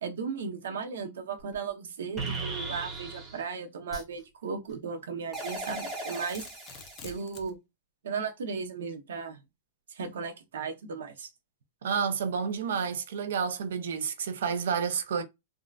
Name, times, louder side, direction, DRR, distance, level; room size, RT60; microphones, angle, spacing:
voice 1, 0.0-6.5 7.0-7.6 8.0-9.4 9.9-11.3, right 5 dB, 90° right, 0.9 m, -36 dB
sound 1, 1.4-1.5 2.2-3.4 3.9-4.0 5.3-7.1, right 3 dB, 10° right, 0.8 m, -37 dB
Domestic sounds home sounds, 5.6-7.5, left 5 dB, 20° left, 0.4 m, -48 dB
voice 2, 11.8-15.2, right 6 dB, 75° right, 0.5 m, -30 dB
3.6 x 2.2 x 2.4 m
supercardioid pair, 180°, 0 cm